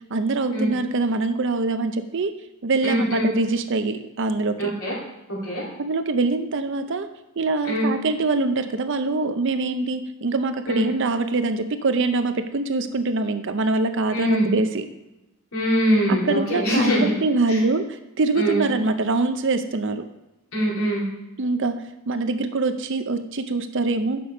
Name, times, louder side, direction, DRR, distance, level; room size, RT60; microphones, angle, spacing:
voice 1, 0.1-2.3 2.6-4.7 5.8-7.1 7.4-14.9 16.1-20.0 21.4-24.2, right 3 dB, 60° right, 9 dB, 0.6 m, -24 dB
voice 2, 2.8-3.3 4.6-5.0 5.3-5.7 7.6-7.9 10.7-10.8 14.1-14.5 15.5-17.1 17.5-17.6 18.4-18.7 20.5-21.1, equal, 80° left, -5 dB, 3.0 m, -22 dB
6.8 x 6.1 x 5.0 m, 1.0 s
head